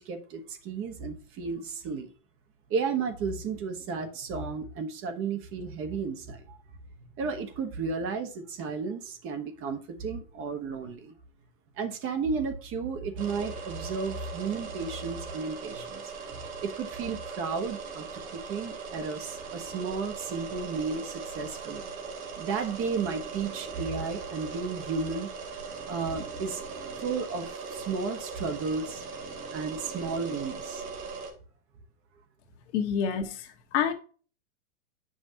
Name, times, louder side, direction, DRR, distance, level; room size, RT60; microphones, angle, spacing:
voice 1, 0.0-2.1 2.7-6.6 7.0-11.1 11.8-21.8 22.4-25.3 25.9-26.6 27.0-29.0 29.5-30.8, right 5 dB, 30° right, 1.3 m, -33 dB
sound 1, 13.2-31.3, right 5 dB, 85° right, 2.5 m, -39 dB
voice 2, 32.7-33.9, left 8 dB, 55° left, 1.4 m, -28 dB
9.7 x 6.2 x 2.9 m
hypercardioid pair, 130°, 42 cm